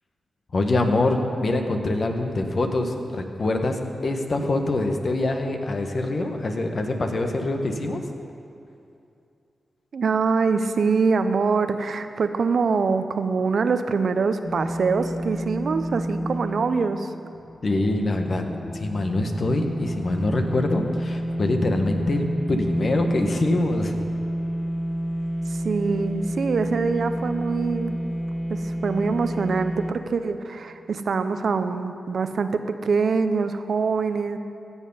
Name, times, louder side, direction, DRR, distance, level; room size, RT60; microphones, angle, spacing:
voice 1, 0.5-8.0 17.6-18.4 18.7-23.9, left 2 dB, 55° left, 4 dB, 1.3 m, -24 dB
voice 2, 9.9-17.1 25.5-28.0 28.5-34.4, right 4 dB, 70° right, 9 dB, 0.6 m, -24 dB
sound 1, 14.4-29.9, equal, 35° left, 1.2 m, -30 dB
15.5 x 7.2 x 5.5 m, 2.6 s
supercardioid pair, 45°, 0 cm